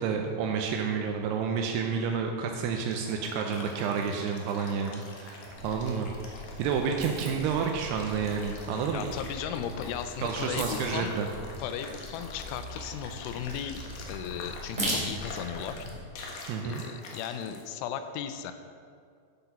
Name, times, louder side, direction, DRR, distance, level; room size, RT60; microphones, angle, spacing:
voice 1, 0.0-9.1 10.2-11.3 16.5-16.8, right 6 dB, 85° right, 3 dB, 2.4 m, -30 dB
sound 1, 2.6-17.6, left 3 dB, 65° left, 2.4 m, -46 dB
sound 2, 5.5-16.0, equal, 15° right, 1.5 m, -39 dB
voice 2, 8.9-11.1 11.6-13.8 14.1-15.9 16.6-18.5, left 9 dB, 85° left, 9 dB, 3.0 m, -36 dB
11.5 x 7.9 x 5.8 m, 2.2 s
omnidirectional pair, 5.5 m